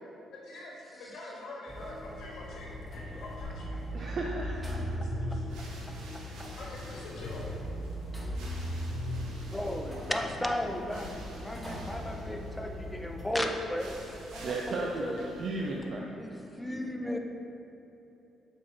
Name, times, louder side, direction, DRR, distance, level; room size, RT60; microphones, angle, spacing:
voice 1, 0.4-3.8 4.2-4.3 5.0-5.4 6.6-7.5, left 1 dB, 65° left, -4 dB, 1.4 m, -45 dB
sound 1, 1.7-13.2, left 1 dB, 15° right, 1.0 m, -43 dB
sound 2, 3.4-5.4 7.2-9.2 11.1-11.2, equal, 90° left, 0.6 m, -36 dB
voice 2, 3.9-5.0 5.7-5.8 6.2-6.4 14.4-16.2, right 2 dB, 60° right, -1 dB, 0.5 m, -35 dB
sound 3, 5.3-16.0, right 1 dB, 85° right, 1.0 m, -50 dB
voice 3, 9.4-14.0 14.3-15.2 16.2-17.2, left 1 dB, 5° left, 3 dB, 0.6 m, -35 dB
7.1 x 4.5 x 3.2 m, 2.9 s
cardioid pair, 90°, 0 cm